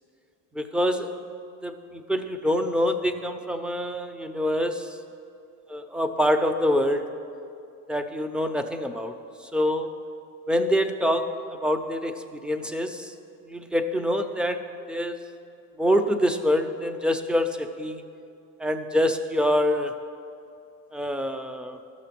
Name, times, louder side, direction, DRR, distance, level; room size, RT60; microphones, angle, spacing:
voice 1, 0.5-1.1 1.6-5.0 5.7-7.1 7.9-9.1 9.4-9.9 10.5-13.1 13.5-14.6 14.9-15.2 15.8-18.0 18.6-19.9 20.9-21.8, equal, 5° right, 8 dB, 0.4 m, -25 dB
13.0 x 6.8 x 5.9 m, 2.5 s
cardioid pair, 130°, 37 cm